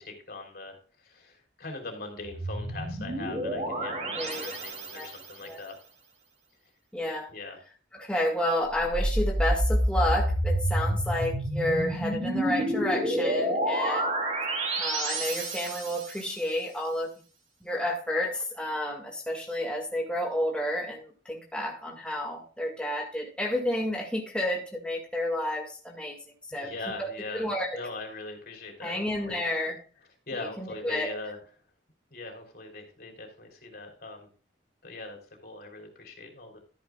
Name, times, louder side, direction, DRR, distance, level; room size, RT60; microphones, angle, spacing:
voice 1, 0.0-5.7 7.3-7.6 26.5-27.5 27.7-29.4 30.3-31.4 32.1-34.3 34.8-35.2 35.4-36.6, left 3 dB, 60° left, 2 dB, 3.6 m, -41 dB
sound 1, 2.2-5.3 8.6-16.3, right 1 dB, 40° right, 3.0 m, -29 dB
voice 2, 4.1-4.6 4.9-5.1 5.4-5.6 6.9-7.3 7.9-14.1 14.8-17.1 17.6-26.2 26.5-26.7 27.0-27.8 28.8-29.8 30.4-31.1, left 1 dB, 5° left, -1 dB, 2.0 m, -31 dB
13.5 x 10.0 x 2.4 m, 0.39 s
head